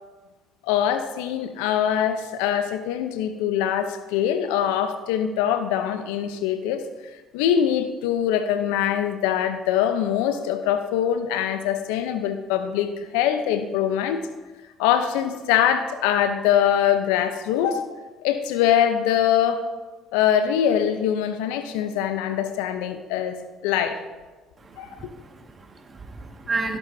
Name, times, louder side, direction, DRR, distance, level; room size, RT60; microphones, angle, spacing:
voice 1, 0.6-6.8 7.3-14.2 14.8-17.8 18.2-19.6 20.1-23.4 23.6-24.0 24.8-25.1, left 9 dB, 80° left, 9 dB, 0.8 m, -23 dB
voice 2, 24.6-26.8, right 3 dB, 35° right, 4 dB, 1.9 m, -32 dB
16.0 x 12.5 x 2.8 m, 1.3 s
hypercardioid pair, 60°, 0 cm